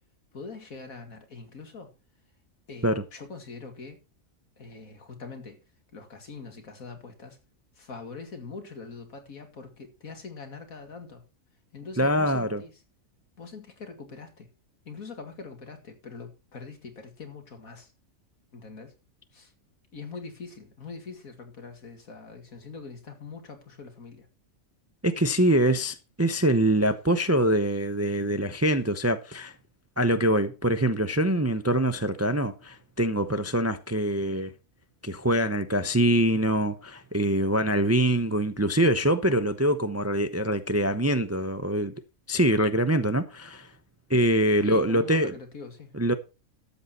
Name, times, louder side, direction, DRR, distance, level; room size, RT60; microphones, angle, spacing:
voice 1, 0.3-1.9 2.7-4.0 4.6-5.6 5.9-7.4 7.8-11.2 11.7-12.7 13.4-14.5 14.8-17.9 18.5-18.9 19.3-19.5 19.9-24.3 44.6-46.0, left 4 dB, 80° left, 2.6 m, -43 dB
voice 2, 12.0-12.6 25.0-29.5 30.0-34.5 35.0-41.9 42.3-43.7 44.1-45.3 45.9-46.1, right 1 dB, 15° right, 0.5 m, -24 dB
12.5 x 8.2 x 4.2 m
omnidirectional pair, 1.5 m